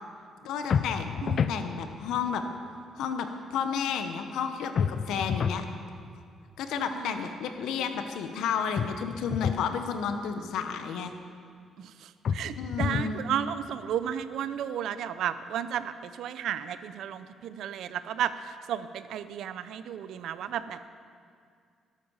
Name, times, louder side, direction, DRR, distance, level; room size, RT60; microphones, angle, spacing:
voice 1, 0.4-2.4 2.9-5.6 6.6-11.1 12.6-13.2, left 7 dB, 85° left, 7 dB, 1.0 m, -32 dB
sound 1, 0.7-1.6 4.8-5.6 8.7-9.6 12.2-13.2, left 7 dB, 55° left, 0.5 m, -29 dB
voice 2, 1.2-1.6 6.8-7.1 11.8-20.9, right 9 dB, 80° right, 13 dB, 0.6 m, -33 dB
13.5 x 12.0 x 5.6 m, 2.2 s
cardioid pair, 90°, 0 cm